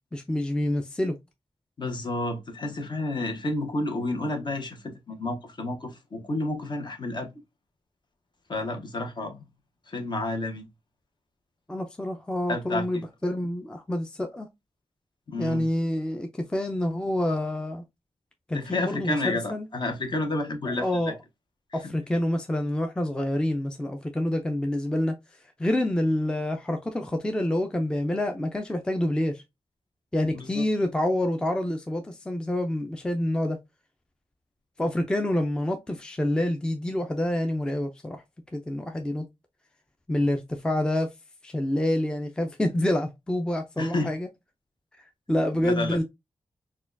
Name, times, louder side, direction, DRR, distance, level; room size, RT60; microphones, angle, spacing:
voice 1, 0.1-1.2 11.7-14.5 15.4-17.8 18.5-19.7 20.6-21.2 21.7-25.1 25.6-29.4 30.1-33.6 34.8-38.2 38.5-39.3 40.1-41.1 41.4-44.3 45.3-46.0, left 1 dB, 10° left, 0.4 m, -27 dB
voice 2, 1.8-7.3 8.5-9.4 9.9-10.6 12.5-12.8 15.3-15.7 18.5-21.1 21.8-21.9 30.3-30.7 43.8-44.1 45.6-46.0, left 2 dB, 45° left, 0.8 m, -30 dB
4.1 x 2.2 x 2.5 m
wide cardioid pair, 135°, 10 cm